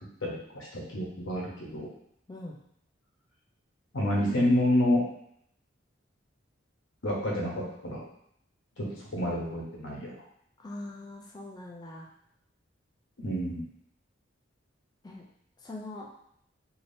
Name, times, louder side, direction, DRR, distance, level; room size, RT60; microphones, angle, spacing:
voice 1, 0.2-1.9 3.9-5.0 7.0-8.0 8.8-8.9 9.1-10.1 13.2-13.6, left 1 dB, 90° left, -3 dB, 1.0 m, -28 dB
voice 2, 10.6-12.1 15.0-15.2 15.6-16.1, left 2 dB, 20° left, -2 dB, 0.3 m, -42 dB
3.3 x 2.7 x 2.6 m, 0.72 s
head